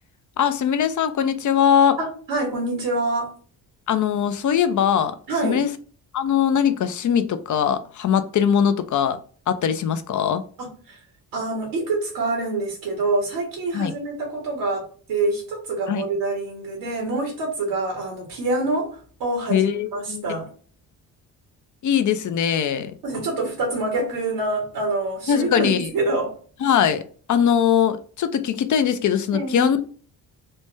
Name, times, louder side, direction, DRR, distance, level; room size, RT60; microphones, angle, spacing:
voice 1, 0.4-2.0 3.9-5.2 5.4-5.7 6.1-9.2 9.5-10.4 13.7-13.9 15.9-16.0 19.5-20.4 21.8-22.9 25.3-25.9 26.6-27.0 27.3-29.8, left 8 dB, 45° left, 0.5 m, -21 dB
voice 2, 2.0-3.3 5.3-5.7 10.6-11.0 11.3-20.5 23.0-26.4 29.3-29.7, right 2 dB, 80° right, 1.2 m, -26 dB
3.2 x 2.1 x 3.2 m
supercardioid pair, 65°, 43 cm